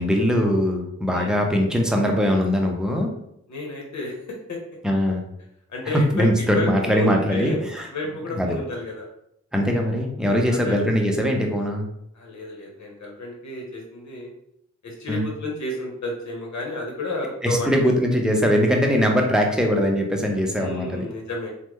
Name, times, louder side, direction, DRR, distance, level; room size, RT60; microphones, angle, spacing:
voice 1, 0.0-3.1 4.8-5.2 5.8-7.9 8.3-8.6 9.5-11.9 15.1-15.2 17.4-21.1, equal, ahead, 1 dB, 0.7 m, -21 dB
voice 2, 3.5-4.1 4.5-4.6 5.7-7.6 7.9-9.1 10.2-10.8 12.1-14.3 14.8-18.0 20.5-21.5, left 1 dB, 70° left, -1 dB, 1.0 m, -31 dB
3.3 x 2.1 x 3.1 m, 0.75 s
cardioid pair, 55°, 29 cm